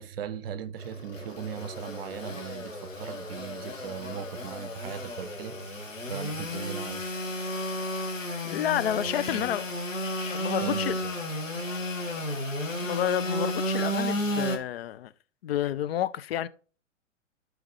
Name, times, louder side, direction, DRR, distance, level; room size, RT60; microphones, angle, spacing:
voice 1, 0.0-7.1 9.0-9.5 10.6-11.1 11.7-11.8, right 8 dB, 50° right, 1.0 m, -39 dB
Engine / Sawing, 0.8-14.6, equal, 90° left, 1.8 m, -33 dB
voice 2, 8.4-9.7 10.3-11.0 12.8-15.1 15.4-16.5, left 11 dB, 55° left, 0.6 m, -30 dB
12.0 x 5.0 x 3.2 m
figure-of-eight pair, 105°, 38 cm